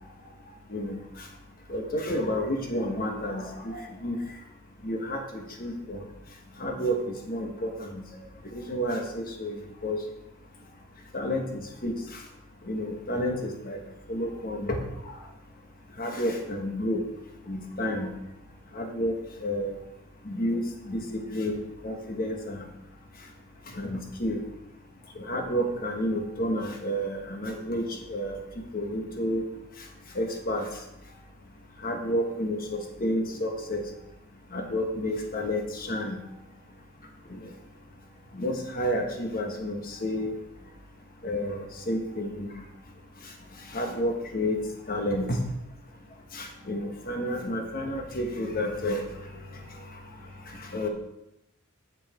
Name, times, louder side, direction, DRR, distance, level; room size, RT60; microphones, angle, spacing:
voice 1, 1.7-4.2 4.8-6.1 6.6-7.0 7.3-8.0 8.5-10.0 11.1-12.2 12.7-13.8 14.1-14.8 16.0-17.0 17.5-18.1 18.7-19.7 20.2-22.7 23.7-24.4 25.2-28.4 28.7-29.4 30.1-30.7 31.8-33.8 34.5-36.2 37.3-37.4 38.3-40.3 41.2-42.5 43.7-44.6 44.9-45.4 46.3-49.0 50.7-50.9, equal, 45° left, 3 dB, 1.3 m, -30 dB
7.2 x 6.5 x 4.4 m, 0.86 s
head